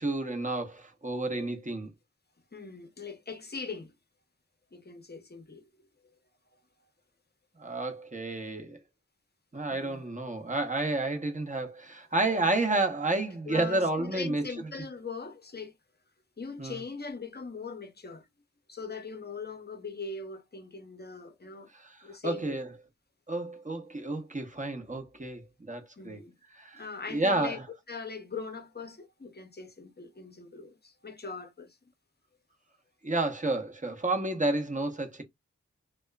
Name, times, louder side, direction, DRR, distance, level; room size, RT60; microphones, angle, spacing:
voice 1, 0.0-1.9 7.6-8.8 9.5-14.5 16.6-16.8 21.7-22.0 22.2-22.7 23.3-25.4 25.7-26.2 26.5-26.8 27.1-27.6 33.0-35.2, right 2 dB, 25° right, 0.9 m, -30 dB
voice 2, 2.5-3.9 4.7-5.6 9.7-10.0 13.5-15.7 16.4-18.3 18.7-21.7 22.0-22.6 26.0-26.3 26.7-27.6 27.9-31.8, left 4 dB, 35° left, 0.7 m, -41 dB
2.8 x 2.2 x 2.2 m
wide cardioid pair, 45°, 30 cm